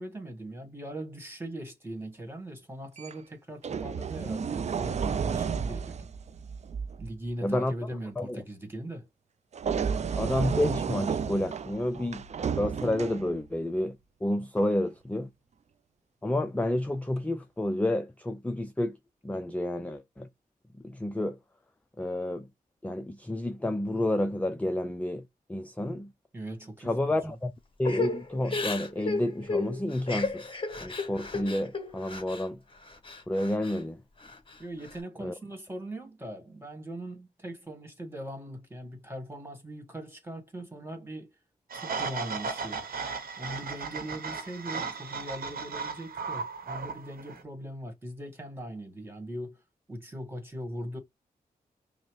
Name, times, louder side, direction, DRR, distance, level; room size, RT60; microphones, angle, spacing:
voice 1, 0.0-6.1 7.0-9.1 26.3-26.9 34.6-41.3 41.7-42.9 43.4-49.6 49.9-51.0, right 1 dB, 15° right, 1.8 m, -40 dB
sound 1, 3.0-3.1 3.6-7.1 9.5-13.6 14.6-14.8, right 6 dB, 45° right, 0.4 m, -32 dB
voice 2, 7.4-7.7 8.2-8.4 10.1-12.2 12.5-14.0 14.2-15.3 16.2-19.0 19.2-20.3 20.8-21.4 22.0-22.5 22.8-25.2 25.5-26.1 26.8-27.5 27.8-32.6 33.3-34.0 35.2-35.3, left 1 dB, 10° left, 0.5 m, -30 dB
Crying sobbing / Breathing, 27.8-32.5 32.8-33.8 34.2-35.0, left 3 dB, 35° left, 1.0 m, -34 dB
sound 2, 41.7-47.4, right 5 dB, 75° right, 1.0 m, -36 dB
5.5 x 2.1 x 3.1 m
cardioid pair, 65°, 15 cm